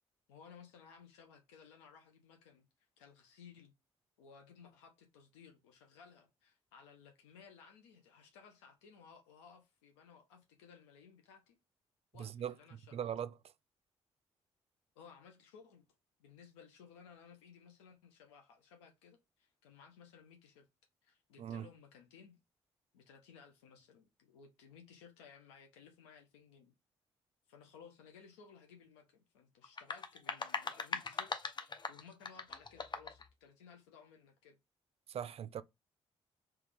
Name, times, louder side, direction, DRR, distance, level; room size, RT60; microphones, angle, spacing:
voice 1, 0.3-2.7 3.0-3.7 4.2-11.6 12.1-13.0 14.9-15.8 16.2-20.7 21.0-22.4 22.9-26.7 27.5-34.6, left 6 dB, 85° left, 0.6 m, -59 dB
voice 2, 12.2-12.5 12.9-13.3 21.4-21.7 35.1-35.6, right 9 dB, 45° right, 0.4 m, -40 dB
sound 1, 29.6-33.3, left 4 dB, 30° left, 0.6 m, -41 dB
3.3 x 3.0 x 3.4 m
hypercardioid pair, 40°, 14 cm